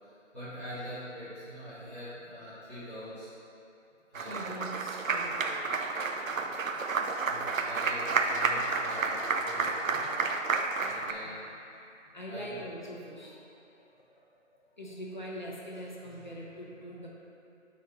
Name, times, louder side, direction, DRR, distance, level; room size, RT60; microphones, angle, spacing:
voice 1, 0.0-3.3 4.1-4.6 7.3-10.0 10.8-11.6 12.3-12.6, equal, 10° left, -20 dB, 1.2 m, -44 dB
voice 2, 4.2-5.8 11.2-11.3 12.1-17.1, equal, 35° left, -4 dB, 0.9 m, -43 dB
Applause, 4.2-11.1, right 4 dB, 90° right, 0.6 m, -30 dB
9.4 x 4.1 x 3.0 m, 2.7 s
figure-of-eight pair, 175°, 39 cm